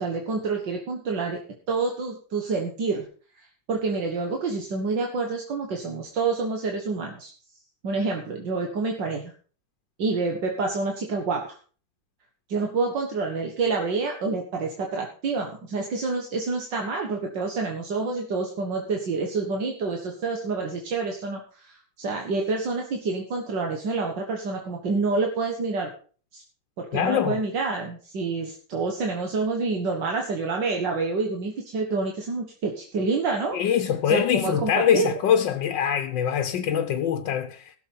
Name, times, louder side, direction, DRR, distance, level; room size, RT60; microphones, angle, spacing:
voice 1, 0.0-1.4 1.7-3.1 3.4-7.3 7.8-9.3 10.0-11.5 12.5-25.9 26.3-26.4 26.8-33.6 34.1-35.1, right 4 dB, 80° right, 2.3 m, -28 dB
voice 2, 26.9-27.4 33.5-37.7, left 8 dB, 85° left, 1.6 m, -23 dB
16.5 x 7.1 x 5.5 m
omnidirectional pair, 1.9 m